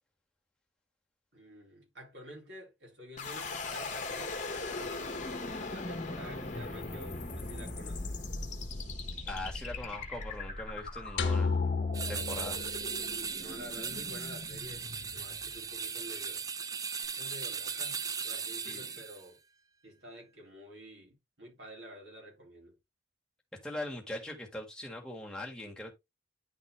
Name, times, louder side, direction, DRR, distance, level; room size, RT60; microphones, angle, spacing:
voice 1, 1.3-4.4 4.7-8.2 13.3-16.5 17.2-19.4 19.8-22.8, equal, 70° right, 3.6 m, -49 dB
sound 1, 3.2-16.1, left 3 dB, 40° left, 1.2 m, -40 dB
voice 2, 9.3-11.5 12.1-12.6 18.6-18.9 23.6-25.9, left 1 dB, 5° left, 1.5 m, -41 dB
sound 2, 11.2-13.5, left 4 dB, 75° left, 0.8 m, -32 dB
sound 3, 11.9-19.2, right 6 dB, 20° right, 0.3 m, -38 dB
10.0 x 3.9 x 3.1 m
head